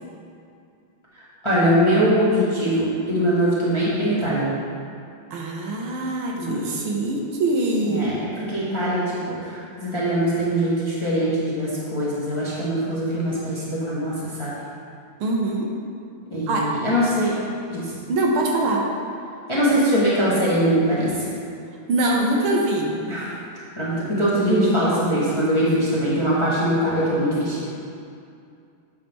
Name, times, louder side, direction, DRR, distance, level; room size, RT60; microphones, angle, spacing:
voice 1, 1.2-4.5 6.3-6.6 7.8-14.5 16.3-17.3 17.7-17.9 19.5-21.1 23.1-23.3 23.8-27.6, equal, 15° left, -9 dB, 1.1 m, -22 dB
voice 2, 5.3-8.2 15.2-15.7 16.5-16.7 18.1-18.8 21.9-23.0, right 2 dB, 75° right, -1 dB, 1.7 m, -23 dB
8.8 x 5.6 x 3.6 m, 2.4 s
omnidirectional pair, 2.4 m